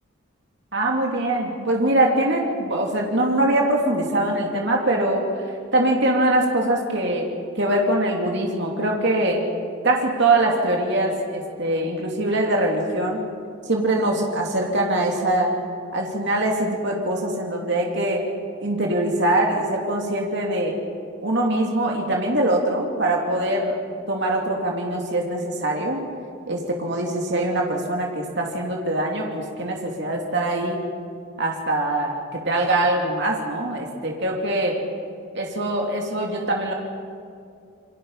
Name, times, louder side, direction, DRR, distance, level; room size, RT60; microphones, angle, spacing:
voice 1, 0.7-5.2 5.7-7.3 7.6-9.5 9.8-13.2 13.7-15.5 15.9-18.2 18.6-20.7 21.2-23.8 24.1-26.0 26.5-30.8 31.4-34.8 35.3-36.7, right 1 dB, 50° right, 0 dB, 2.9 m, -23 dB
28.5 x 23.5 x 5.7 m, 2.5 s
head